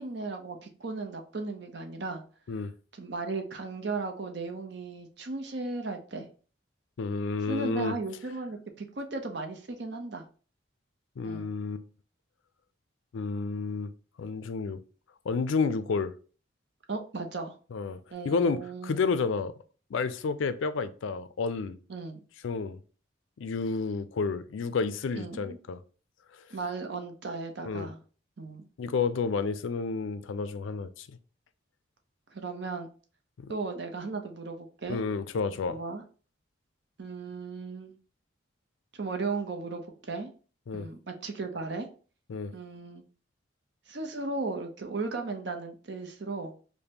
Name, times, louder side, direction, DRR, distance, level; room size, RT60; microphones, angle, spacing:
voice 1, 0.0-2.2 2.9-6.3 7.5-10.2 11.2-11.5 16.9-17.6 18.1-19.0 21.9-22.2 25.1-25.6 26.5-28.0 28.4-28.6 32.3-32.9 33.5-35.0 35.7-36.0 37.0-38.0 38.9-40.3 40.7-41.9 42.5-43.0 43.9-46.5, right 3 dB, 60° right, 0.6 m, -36 dB
voice 2, 7.0-8.0 11.2-11.8 13.1-13.9 14.2-14.8 15.3-16.1 17.7-18.0 18.2-19.6 19.9-21.8 22.4-22.8 23.4-25.8 27.6-27.9 28.8-31.2 33.4-33.5 34.9-35.8 40.7-40.9 42.3-42.5, left 4 dB, 75° left, 0.4 m, -30 dB
5.1 x 2.1 x 2.8 m
head